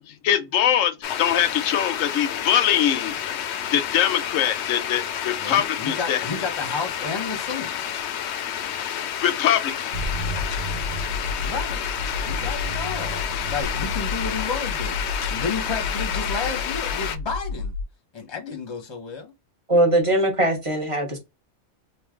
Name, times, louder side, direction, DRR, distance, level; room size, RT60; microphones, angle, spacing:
voice 1, 0.0-3.4 3.7-6.2 9.2-9.9, left 10 dB, 90° left, 1.1 m, -23 dB
sound 1, 1.0-17.2, left 9 dB, 65° left, 0.8 m, -30 dB
voice 2, 5.4-7.7 11.4-11.8 12.2-15.0 15.3-17.7 18.1-19.3, left 5 dB, 25° left, 0.9 m, -31 dB
sound 2, 9.9-17.8, left 3 dB, 85° right, 1.1 m, -31 dB
voice 3, 19.7-21.2, right 1 dB, 25° right, 1.2 m, -20 dB
3.2 x 2.6 x 3.7 m
omnidirectional pair, 1.3 m